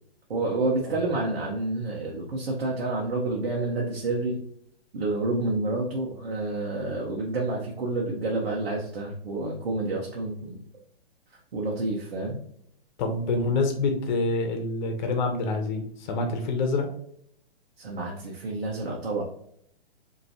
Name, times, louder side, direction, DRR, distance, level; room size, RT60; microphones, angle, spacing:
voice 1, 0.3-4.4 4.9-10.6 11.5-12.4 17.8-19.2, right 2 dB, 75° right, -2 dB, 1.1 m, -29 dB
voice 2, 13.0-16.9, left 3 dB, 50° left, 5 dB, 1.0 m, -26 dB
5.2 x 3.0 x 2.9 m, 0.68 s
hypercardioid pair, 130°, 30 cm